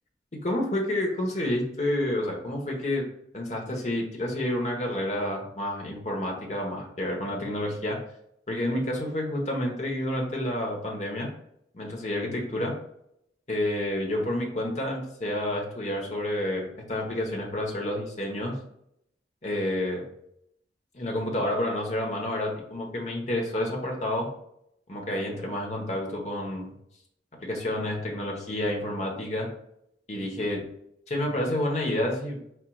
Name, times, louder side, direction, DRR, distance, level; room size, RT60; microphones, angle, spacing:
voice 1, 0.4-3.0 3.3-8.0 8.5-11.3 11.7-12.7 13.5-18.5 19.4-20.0 20.9-24.3 24.9-26.7 27.4-29.5 30.1-30.6 31.1-32.4, left 1 dB, 40° left, 0 dB, 1.1 m, -29 dB
4.7 x 4.5 x 2.3 m, 0.74 s
head